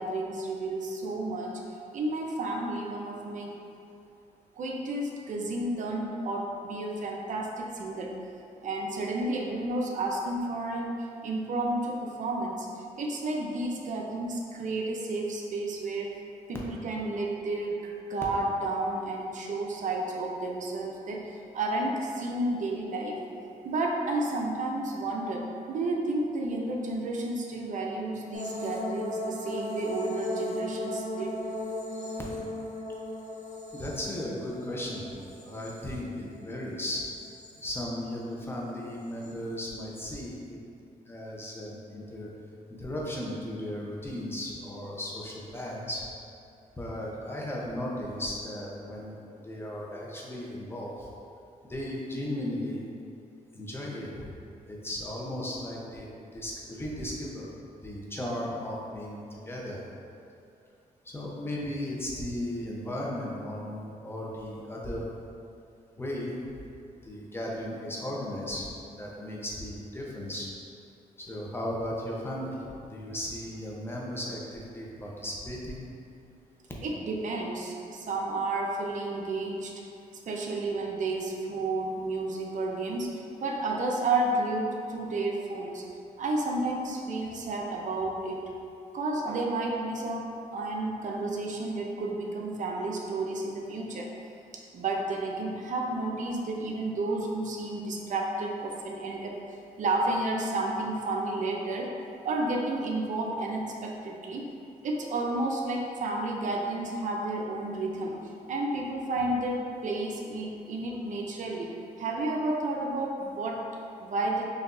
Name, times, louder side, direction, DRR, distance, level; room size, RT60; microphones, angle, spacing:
voice 1, 0.0-1.5 1.9-3.5 4.6-8.1 8.6-12.7 13.0-16.2 16.5-23.2 23.6-31.3 76.8-79.8 80.3-83.1 83.4-85.8 86.2-88.5 88.9-94.1 94.7-99.4 99.8-101.9 102.2-104.5 104.8-108.2 108.5-111.7 112.0-113.6 114.0-114.5, right 2 dB, 60° right, 0 dB, 0.5 m, -31 dB
sound 1, 28.3-36.5 36.9-37.7 39.0-39.3, left 1 dB, 60° left, 0.9 m, -37 dB
voice 2, 33.7-35.1 35.3-37.1 37.6-40.6 41.1-42.3 42.7-46.0 46.8-49.2 49.4-51.1 51.7-52.8 53.5-54.1 54.7-56.1 56.3-57.5 57.8-59.8 61.0-65.1 66.0-66.4 67.0-70.5 71.2-72.6 72.9-75.8, left 1 dB, 15° left, -4 dB, 0.9 m, -36 dB
5.7 x 2.7 x 2.6 m, 2.6 s
cardioid pair, 75°, 14 cm